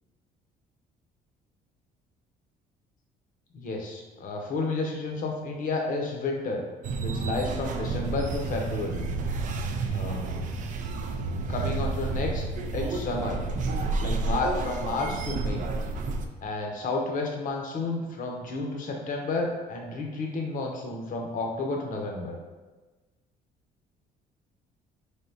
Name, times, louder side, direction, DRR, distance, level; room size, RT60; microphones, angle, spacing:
voice 1, 3.5-6.6 7.0-9.1 9.9-10.3 11.5-12.5 12.7-13.4 14.0-15.7 16.4-22.4, left 3 dB, 50° left, 1 dB, 0.8 m, -31 dB
sound 1, 6.8-16.3, right 3 dB, 50° right, 0.4 m, -30 dB
4.0 x 3.5 x 2.7 m, 1.2 s
cardioid pair, 110°, 17 cm